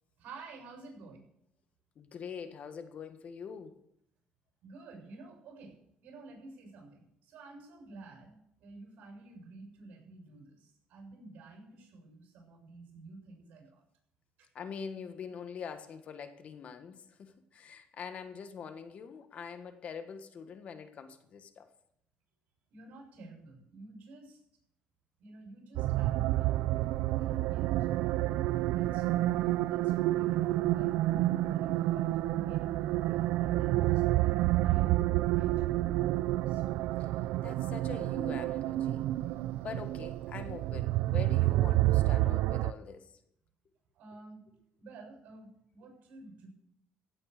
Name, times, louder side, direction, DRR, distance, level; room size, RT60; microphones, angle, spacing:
voice 1, 0.2-1.3 4.6-5.8 6.0-13.8 14.4-14.5 22.7-24.4 25.2-27.7 28.7-29.1 29.4-35.5 36.2-36.6 43.9-44.4 44.8-46.5, right 3 dB, 75° right, 7.1 m, -51 dB
voice 2, 2.0-3.8 14.5-21.7 37.0-37.1 37.4-39.1 39.6-43.1, left 6 dB, 50° left, 1.5 m, -44 dB
sound 1, 25.8-42.7, right 16 dB, 90° right, 0.5 m, -29 dB
16.0 x 8.5 x 6.7 m
cardioid pair, 120°, 3 cm